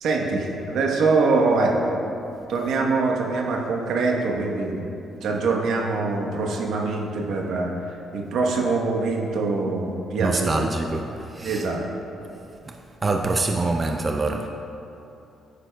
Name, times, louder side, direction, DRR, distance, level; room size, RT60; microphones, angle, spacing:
voice 1, 0.0-1.9 2.5-4.8 5.2-7.7 8.1-10.7 11.4-11.8, right 3 dB, 75° right, 1 dB, 1.0 m, -23 dB
voice 2, 10.2-11.7 12.7-12.8 13.0-14.5, right 3 dB, 30° right, 4 dB, 0.4 m, -25 dB
10.5 x 8.4 x 2.3 m, 2.8 s
cardioid pair, 90°, 0 cm